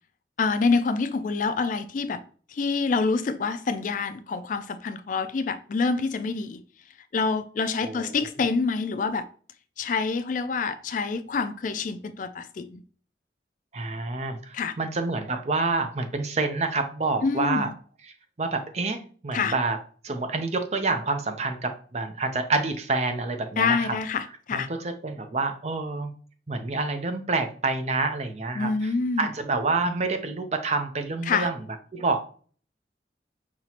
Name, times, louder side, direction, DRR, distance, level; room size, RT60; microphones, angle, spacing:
voice 1, 0.4-2.2 2.5-6.6 7.1-9.3 9.8-12.8 14.5-14.7 17.2-17.7 19.3-19.5 23.6-24.7 28.6-29.3 31.3-31.5, left 4 dB, 45° left, 0.3 m, -26 dB
voice 2, 7.8-8.2 13.7-17.7 18.4-19.8 20.0-24.0 24.5-26.1 26.5-28.9 29.2-31.6 31.9-32.2, right 3 dB, 40° right, 0.6 m, -28 dB
5.7 x 2.9 x 2.9 m
head